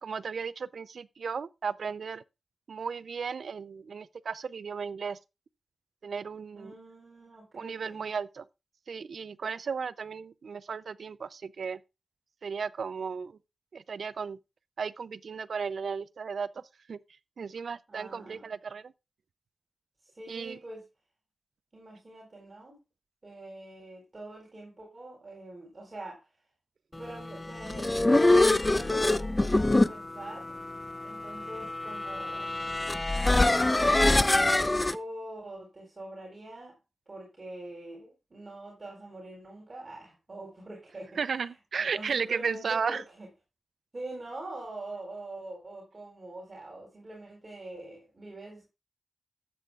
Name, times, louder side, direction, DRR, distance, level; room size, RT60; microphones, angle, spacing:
voice 1, 0.0-2.2 2.7-5.2 6.0-6.7 7.5-8.4 8.9-11.8 12.4-13.4 13.7-14.4 14.8-16.5 16.9-17.0 17.4-18.9 20.3-20.6 41.2-43.0, right 5 dB, 80° right, 0.5 m, -34 dB
voice 2, 6.6-8.1 17.9-18.5 20.0-20.9 21.7-22.8 23.2-26.3 26.9-30.6 31.0-32.5 33.4-36.8 37.1-43.3 43.9-48.7, right 2 dB, 40° right, 4.3 m, -44 dB
sound 1, 27.4-35.0, left 2 dB, 25° left, 0.6 m, -25 dB
13.0 x 8.5 x 2.4 m
cardioid pair, 70°, 0 cm